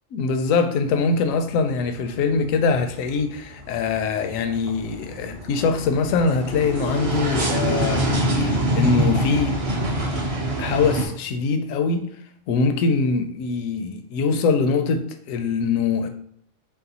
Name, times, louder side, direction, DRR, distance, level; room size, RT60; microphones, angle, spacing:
voice 1, 0.1-8.1 8.4-9.6 10.6-12.1 12.5-16.1, left 4 dB, 75° left, 0.9 m, -23 dB
sound 1, 1.1-1.5 1.9-11.1, right 1 dB, 35° right, 0.6 m, -25 dB
4.6 x 3.3 x 2.8 m
omnidirectional pair, 1.5 m